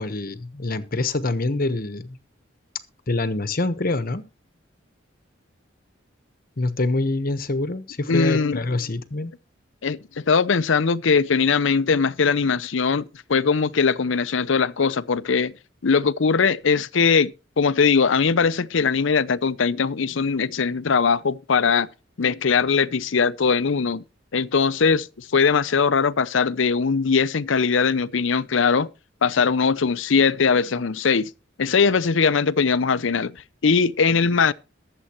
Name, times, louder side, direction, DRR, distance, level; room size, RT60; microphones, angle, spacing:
voice 1, 0.0-2.2 3.1-4.2 6.6-9.3, left 2 dB, 45° left, 1.1 m, -25 dB
voice 2, 8.1-8.6 9.8-15.5 15.8-21.9 22.2-24.0 24.3-28.9 29.2-31.3 31.6-33.4 33.6-34.5, left 5 dB, 75° left, 0.6 m, -20 dB
22.0 x 7.7 x 3.0 m
head